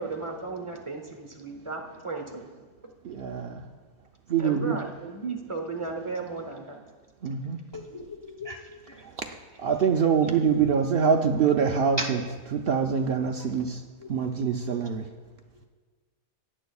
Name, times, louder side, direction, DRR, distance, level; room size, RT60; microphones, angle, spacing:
voice 1, 0.0-2.4 4.4-6.8 10.3-10.4, right 3 dB, 25° right, 3 dB, 0.8 m, -35 dB
voice 2, 3.0-3.6 4.3-4.8 7.2-7.6 9.6-12.2 12.5-13.8 14.1-15.0, right 6 dB, 85° right, 3 dB, 0.5 m, -24 dB
voice 3, 7.7-8.6 8.9-9.1 10.6-10.7 12.0-12.3 14.0-14.1, equal, 20° left, 0 dB, 0.8 m, -36 dB
17.0 x 9.8 x 2.3 m, 1.4 s
omnidirectional pair, 1.6 m